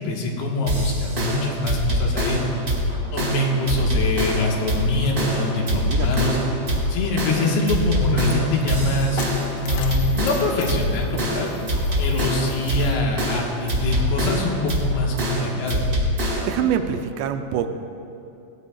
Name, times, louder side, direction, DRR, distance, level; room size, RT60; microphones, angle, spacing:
voice 1, 0.0-2.4 3.1-6.4 6.9-9.2 9.6-11.5 12.0-15.9, left 2 dB, 70° left, -1 dB, 3.3 m, -24 dB
sound 1, 0.7-16.6, equal, 35° right, 1.6 m, -24 dB
sound 2, 2.3-15.4, right 1 dB, 20° left, 1.4 m, -42 dB
voice 2, 3.0-3.6 5.9-6.7 16.4-17.7, right 8 dB, 85° right, 7 dB, 2.8 m, -27 dB
Coin (dropping), 7.5-13.2, left 7 dB, 90° left, 3.1 m, -41 dB
19.5 x 18.5 x 2.4 m, 2.9 s
omnidirectional pair, 5.0 m